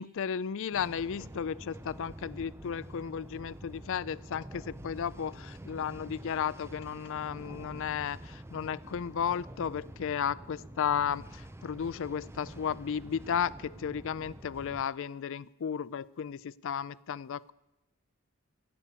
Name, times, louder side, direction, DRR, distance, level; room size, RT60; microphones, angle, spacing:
voice 1, 0.0-17.5, left 7 dB, 60° left, 20 dB, 0.4 m, -34 dB
sound 1, 0.7-14.8, right 1 dB, 10° right, 0.5 m, -47 dB
16.5 x 8.5 x 8.2 m, 0.98 s
head